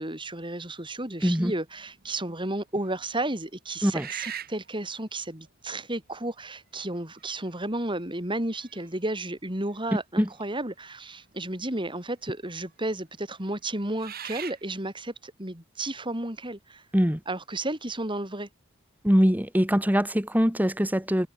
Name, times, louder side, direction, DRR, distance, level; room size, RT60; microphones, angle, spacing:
voice 1, 0.0-16.8 17.3-18.5, right 1 dB, 25° right, 7.2 m, -33 dB
sound 1, 1.8-2.2 2.8-2.9 3.9-4.7 5.9-6.0 7.0-7.4 7.9-8.0 8.5-9.2 10.9-11.0 11.3-11.9 12.5-12.7 13.6-14.6, right 9 dB, 50° right, 4.2 m, -40 dB
voice 2, 19.0-21.3, equal, 10° right, 2.4 m, -22 dB
head